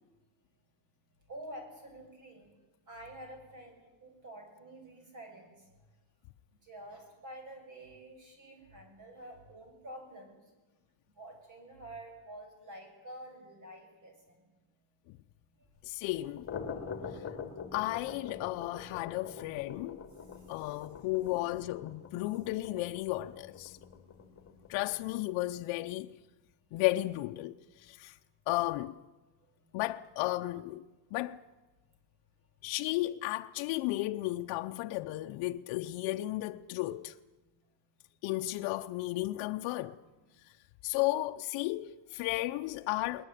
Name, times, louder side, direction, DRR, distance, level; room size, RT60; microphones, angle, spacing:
voice 1, 1.3-2.5 2.9-5.7 6.6-10.4 11.2-14.1 20.3-20.7 29.6-29.7, right 1 dB, 35° right, 6.8 m, -48 dB
voice 2, 15.8-16.5 17.1-17.2 17.7-20.0 20.5-23.8 24.7-26.2 26.7-28.2 28.5-29.0 29.7-30.9 31.1-31.4 32.6-37.2 38.2-40.0 40.8-43.2, left 18 dB, 70° left, 0.8 m, -34 dB
sound 1, 16.3-25.2, left 6 dB, 25° left, 2.7 m, -45 dB
21.5 x 20.0 x 9.2 m
cardioid pair, 150°, 49 cm